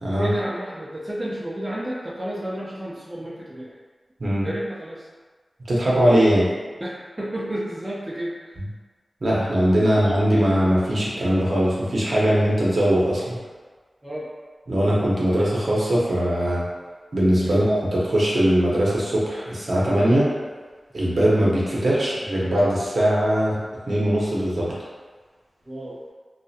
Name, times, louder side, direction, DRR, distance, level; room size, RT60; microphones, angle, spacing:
voice 1, 0.2-3.7 4.4-5.1 6.8-8.6 14.0-14.4 17.4-17.6 25.7-26.0, right 1 dB, 20° right, -7 dB, 0.4 m, -31 dB
voice 2, 5.7-6.5 8.6-8.7 9.2-13.4 14.7-16.6 17.1-20.3 20.9-23.6 23.9-24.7, equal, 65° right, -7 dB, 0.7 m, -20 dB
2.3 x 2.1 x 2.7 m, 1.5 s
wide cardioid pair, 75°, 0 cm